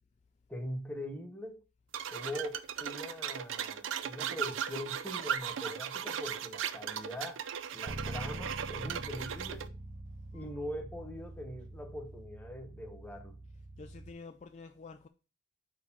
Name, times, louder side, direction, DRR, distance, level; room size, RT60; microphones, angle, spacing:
voice 1, 0.5-1.6 2.1-7.4 7.7-9.7 10.3-13.4, equal, 10° left, 1.0 m, -42 dB
sound 1, 1.9-9.7, right 8 dB, 90° right, 0.5 m, -37 dB
Bass guitar, 7.9-14.1, right 1 dB, 40° right, 0.7 m, -45 dB
voice 2, 10.3-10.6 13.8-15.1, left 4 dB, 35° left, 0.4 m, -49 dB
4.8 x 4.4 x 5.8 m
head